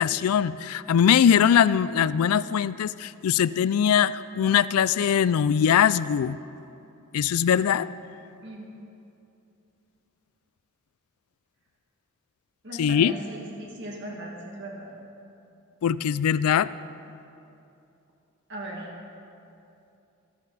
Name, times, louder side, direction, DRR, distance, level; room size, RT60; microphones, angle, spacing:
voice 1, 0.0-6.4 7.1-7.9 12.8-13.1 15.8-16.7, left 8 dB, 90° left, 17 dB, 0.3 m, -21 dB
voice 2, 12.6-14.9 18.5-18.9, right 1 dB, 55° right, -1 dB, 2.2 m, -38 dB
14.0 x 13.5 x 4.1 m, 2.7 s
head